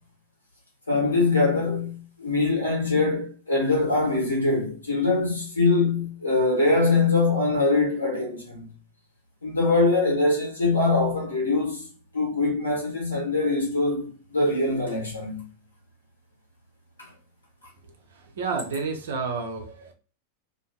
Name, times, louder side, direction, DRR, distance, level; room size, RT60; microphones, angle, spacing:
voice 1, 0.9-8.6 9.4-11.8 12.1-15.4 17.0-17.1, left 3 dB, 80° left, 1.2 m, -23 dB
voice 2, 18.4-19.9, right 4 dB, 60° right, 0.5 m, -30 dB
2.5 x 2.4 x 2.2 m
figure-of-eight pair, 90°, 0 cm